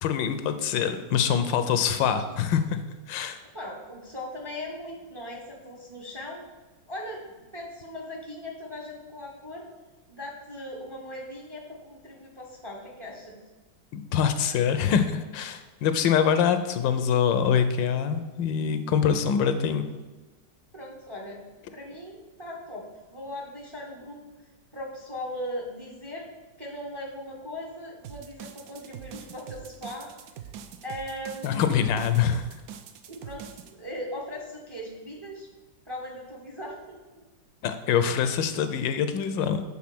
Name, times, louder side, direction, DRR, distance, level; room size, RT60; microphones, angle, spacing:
voice 1, 0.0-2.8 3.1-3.4 13.9-19.8 31.4-32.5 37.6-39.6, left 7 dB, 80° left, 10 dB, 1.3 m, -24 dB
voice 2, 3.5-6.5 6.9-7.2 7.5-9.7 10.1-13.4 20.7-21.4 21.7-24.2 24.7-26.3 26.6-30.1 30.8-31.7 33.1-33.4 33.7-35.5 35.8-37.0, left 1 dB, 25° right, -1 dB, 0.7 m, -39 dB
sound 1, 28.0-33.7, right 8 dB, 75° right, 0.8 m, -43 dB
7.4 x 3.7 x 6.0 m, 1.2 s
omnidirectional pair, 2.0 m